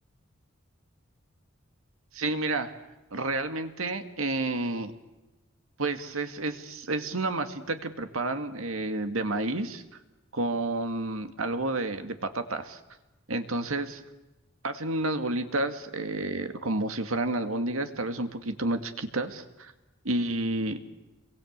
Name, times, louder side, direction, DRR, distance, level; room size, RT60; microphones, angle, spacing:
voice 1, 2.1-2.7 3.1-4.9 5.8-9.8 10.3-12.8 13.3-14.0 14.6-19.7 20.0-20.8, right 2 dB, 80° right, 8 dB, 2.1 m, -30 dB
27.5 x 22.5 x 8.2 m, 1.0 s
head